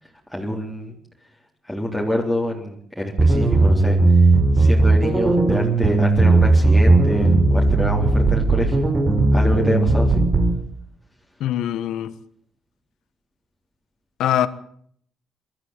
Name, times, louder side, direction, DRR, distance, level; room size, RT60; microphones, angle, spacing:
voice 1, 0.3-0.9 1.7-4.2 4.5-8.9 9.3-10.2, equal, ahead, 3.8 m, -26 dB
sound 1, 3.2-10.6, right 2 dB, 35° right, 4.4 m, -16 dB
voice 2, 11.4-12.1 14.2-14.5, left 11 dB, 80° left, 1.3 m, -22 dB
23.5 x 13.0 x 9.2 m
cardioid pair, 90°, 0 cm